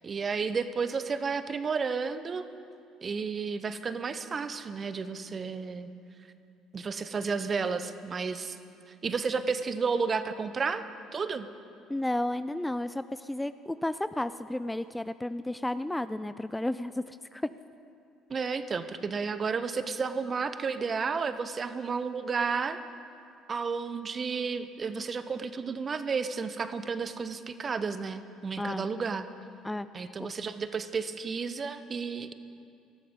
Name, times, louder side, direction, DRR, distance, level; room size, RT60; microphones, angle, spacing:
voice 1, 0.0-2.4 3.0-5.9 6.7-8.6 8.9-10.8 11.1-11.5 18.3-22.8 23.5-29.3 29.9-32.3, right 5 dB, 35° right, 12 dB, 0.8 m, -32 dB
voice 2, 11.9-17.4 28.6-28.8 29.6-29.9, left 1 dB, 10° left, 13 dB, 0.4 m, -32 dB
19.0 x 13.0 x 3.7 m, 2.6 s
hypercardioid pair, 55°, 0 cm